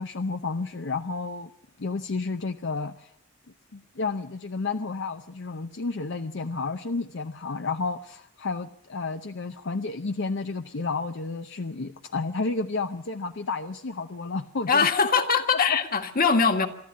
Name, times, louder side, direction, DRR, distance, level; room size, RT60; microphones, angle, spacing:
voice 1, 0.0-1.5 1.8-3.1 3.7-14.9 15.7-15.8, left 3 dB, 65° left, 8 dB, 0.7 m, -31 dB
voice 2, 14.7-16.7, left 5 dB, 45° left, 6 dB, 1.8 m, -22 dB
24.5 x 13.0 x 8.5 m, 0.73 s
head